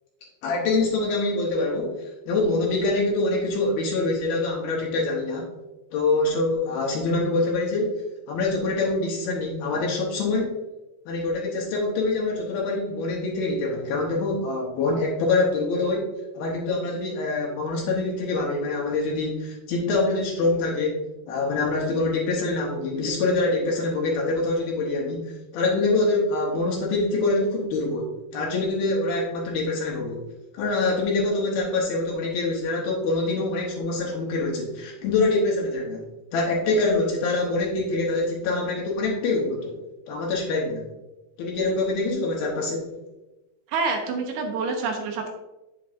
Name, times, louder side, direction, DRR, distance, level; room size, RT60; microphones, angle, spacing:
voice 1, 0.4-5.5 5.9-8.0 8.3-10.6 11.1-30.2 30.5-36.0 36.3-39.8 40.1-40.9 41.4-42.9, left 2 dB, 70° left, -2 dB, 2.7 m, -25 dB
voice 2, 43.7-45.3, right 4 dB, 75° right, 3 dB, 2.5 m, -27 dB
9.1 x 7.3 x 2.5 m, 1.0 s
omnidirectional pair, 5.0 m